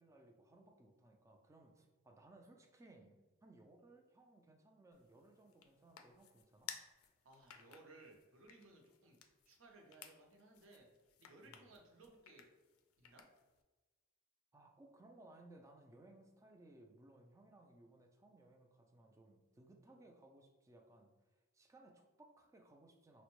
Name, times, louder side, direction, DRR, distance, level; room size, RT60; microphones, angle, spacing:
voice 1, 0.0-6.7 11.5-11.7 14.5-23.2, right 2 dB, 15° right, 3 dB, 0.3 m, -63 dB
sound 1, 4.9-13.6, left 8 dB, 90° left, 0.4 m, -58 dB
voice 2, 7.2-9.2 9.5-10.9 11.2-12.4 13.0-13.2, right 2 dB, 70° right, 1 dB, 0.6 m, -61 dB
4.2 x 2.1 x 3.0 m, 1.2 s
head